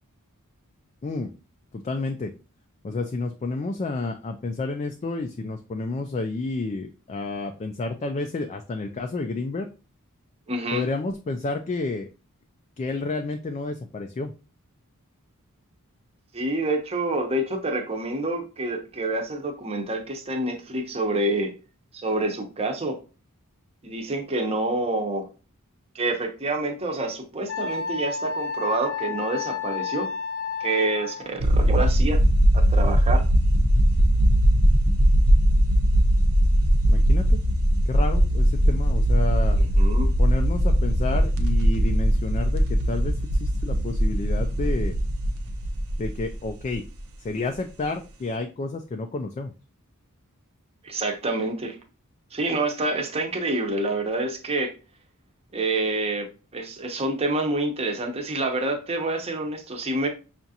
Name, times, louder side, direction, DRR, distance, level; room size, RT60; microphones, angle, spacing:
voice 1, 1.0-1.3 1.7-2.3 2.8-9.7 10.7-12.1 12.8-14.3 36.9-37.4 37.9-39.6 40.2-45.0 46.0-46.9 47.2-49.5, left 3 dB, 30° left, 0.3 m, -30 dB
voice 2, 10.5-10.8 16.3-21.5 21.9-23.0 23.8-25.2 25.9-30.1 30.6-32.2 32.5-33.2 39.5-40.1 50.8-51.8 52.3-54.7 55.5-60.1, right 2 dB, 30° right, 0.7 m, -27 dB
Wind instrument woodwind instrument, 27.5-31.3, left 6 dB, 70° left, 0.8 m, -31 dB
sound 1, 31.4-47.0, equal, 75° right, 0.6 m, -20 dB
5.7 x 2.5 x 2.7 m
head